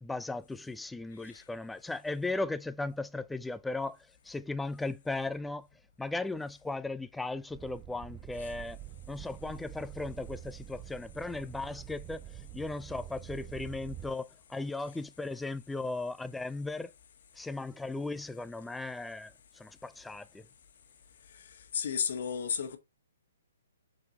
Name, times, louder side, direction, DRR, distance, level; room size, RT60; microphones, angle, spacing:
voice 1, 0.0-4.0 4.2-5.7 6.0-8.8 9.1-16.9 17.4-20.5, left 2 dB, 5° left, 0.4 m, -37 dB
sound 1, 7.5-14.2, right 12 dB, 25° right, 1.0 m, -46 dB
voice 2, 21.7-22.8, left 7 dB, 55° left, 1.6 m, -33 dB
7.9 x 4.1 x 4.0 m
figure-of-eight pair, 125°, 0 cm